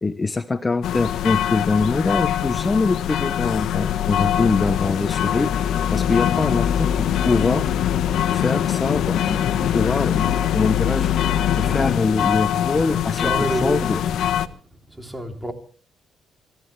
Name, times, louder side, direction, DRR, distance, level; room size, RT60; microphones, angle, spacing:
voice 1, 0.0-5.5 5.9-7.7 8.3-13.3 13.6-14.0, left 3 dB, 25° left, 0.9 m, -23 dB
sound 1, 0.8-14.5, left 10 dB, 75° left, 1.1 m, -22 dB
voice 2, 12.9-14.1 14.4-14.5 14.9-15.5, right 1 dB, 10° right, 3.1 m, -29 dB
28.0 x 14.5 x 3.3 m
cardioid pair, 90°, 0 cm